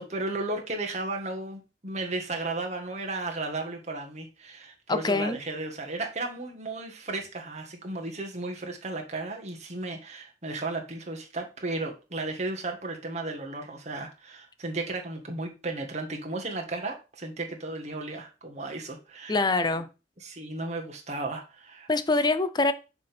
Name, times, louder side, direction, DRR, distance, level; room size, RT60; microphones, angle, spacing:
voice 1, 0.0-19.5 20.2-21.9, right 2 dB, 40° right, 1.6 m, -34 dB
voice 2, 4.9-5.4 19.3-19.9 21.9-22.7, left 3 dB, 25° left, 0.6 m, -24 dB
6.7 x 3.5 x 5.8 m
head